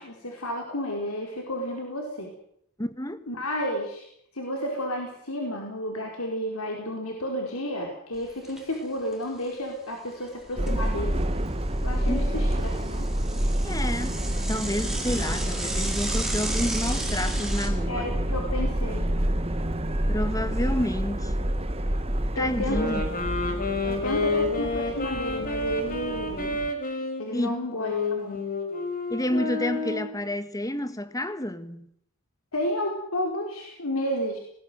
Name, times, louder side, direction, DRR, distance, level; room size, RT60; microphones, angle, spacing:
voice 1, 0.0-2.3 3.3-4.1 4.3-11.2 11.8-13.0 17.9-19.1 22.4-22.9 23.8-26.6 27.2-28.4 32.5-34.4, left 1 dB, 90° left, 4.6 m, -31 dB
voice 2, 2.8-3.3 12.1-12.4 13.6-14.2 14.5-18.1 20.1-21.5 22.4-23.1 27.3-27.6 29.1-31.9, left 1 dB, 15° left, 1.6 m, -30 dB
Bicycle / Mechanisms, 8.1-8.8 9.1-9.2 9.5-9.6 10.2-11.4 11.8-17.7, right 2 dB, ahead, 4.3 m, -35 dB
Subway metro underground, 10.6-26.7, right 1 dB, 30° right, 1.8 m, -28 dB
sound 1, 22.6-30.2, left 3 dB, 40° left, 5.2 m, -30 dB
20.0 x 19.0 x 9.4 m
head